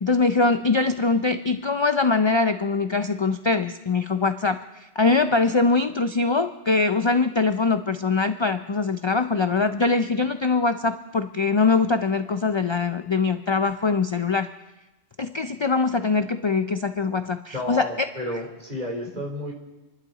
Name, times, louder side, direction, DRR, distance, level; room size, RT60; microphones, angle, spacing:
voice 1, 0.0-14.5 15.2-18.1, left 4 dB, 35° left, 9 dB, 0.4 m, -22 dB
voice 2, 17.5-19.5, left 1 dB, 40° right, -1 dB, 3.7 m, -31 dB
27.5 x 12.0 x 4.0 m, 1.0 s
omnidirectional pair, 1.1 m